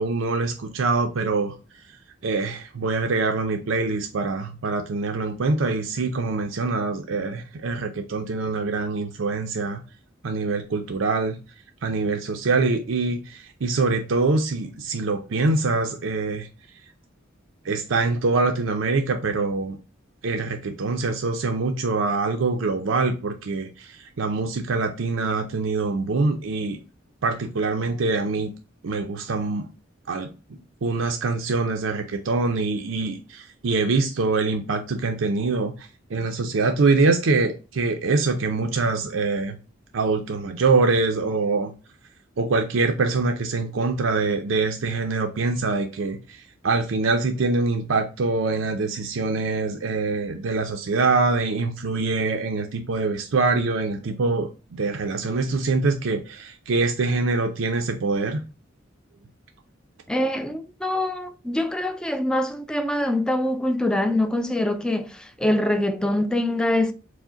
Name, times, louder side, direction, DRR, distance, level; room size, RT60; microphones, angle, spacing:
voice 1, 0.0-1.5 2.2-9.8 10.2-11.4 11.8-16.5 17.6-19.8 20.2-26.8 27.2-28.5 28.8-29.6 30.1-30.3 30.8-39.6 39.9-41.7 42.4-58.4, right 3 dB, 85° right, 0.5 m, -24 dB
voice 2, 60.1-66.9, left 1 dB, 5° left, 0.3 m, -24 dB
4.7 x 2.1 x 3.8 m
head